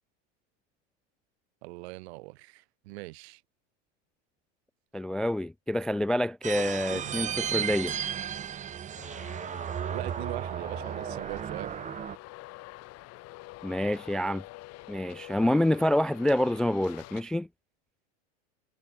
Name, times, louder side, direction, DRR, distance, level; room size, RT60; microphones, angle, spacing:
voice 1, 1.6-3.4 6.9-7.1 9.9-11.7, right 23 dB, 65° right, 3.7 m, -40 dB
voice 2, 4.9-7.9 13.6-14.4 14.9-17.5, left 1 dB, ahead, 0.3 m, -27 dB
sound 1, 6.4-12.2, right 9 dB, 20° right, 1.1 m, -34 dB
Traffic noise roadway noise, 9.0-17.2, left 20 dB, 45° left, 5.7 m, -47 dB
supercardioid pair, 130°, 35 cm